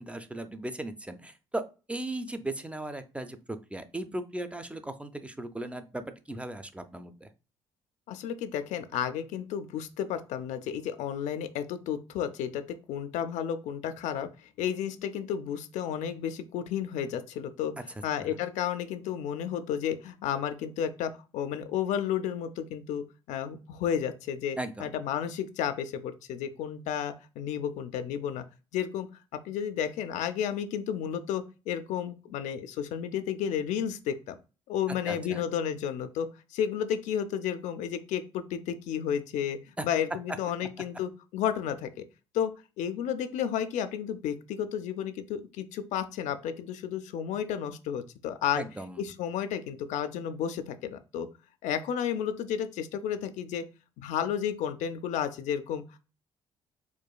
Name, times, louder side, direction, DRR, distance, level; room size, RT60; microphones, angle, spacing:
voice 1, 0.0-7.3 18.2-18.3 24.6-24.9 35.1-35.4 39.8-39.9 48.5-49.1, right 1 dB, 10° right, 10 dB, 0.4 m, -37 dB
voice 2, 8.1-17.7 18.0-28.4 28.7-29.1 29.4-34.3 34.7-42.0 42.3-48.6 49.0-51.3 51.6-53.6 54.0-56.0, left 9 dB, 75° left, 9 dB, 0.4 m, -32 dB
4.6 x 2.3 x 2.2 m, 0.32 s
supercardioid pair, 75°, 12 cm